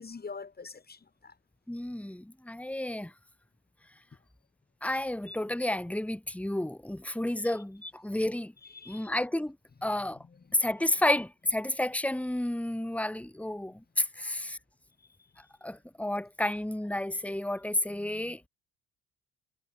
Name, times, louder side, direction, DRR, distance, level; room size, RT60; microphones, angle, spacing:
voice 1, 0.0-1.3 8.6-9.1 14.2-14.4 17.9-18.4, left 4 dB, 30° left, 3.0 m, -45 dB
voice 2, 1.7-3.1 4.8-8.5 8.9-9.6 9.8-10.2 10.5-14.6 15.6-18.4, left 1 dB, 5° left, 3.0 m, -31 dB
supercardioid pair, 75°, 32 cm